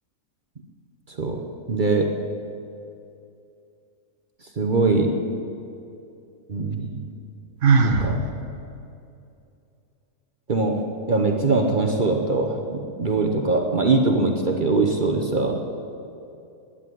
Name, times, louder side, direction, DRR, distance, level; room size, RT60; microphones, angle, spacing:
voice 1, 1.1-2.1 4.6-5.2 6.5-7.1 7.8-8.2 10.5-15.6, right 3 dB, 40° right, 3 dB, 0.9 m, -22 dB
Sigh, 7.6-8.1, right 5 dB, 55° right, 1.2 m, -17 dB
11.0 x 9.8 x 9.2 m, 2.6 s
omnidirectional pair, 1.6 m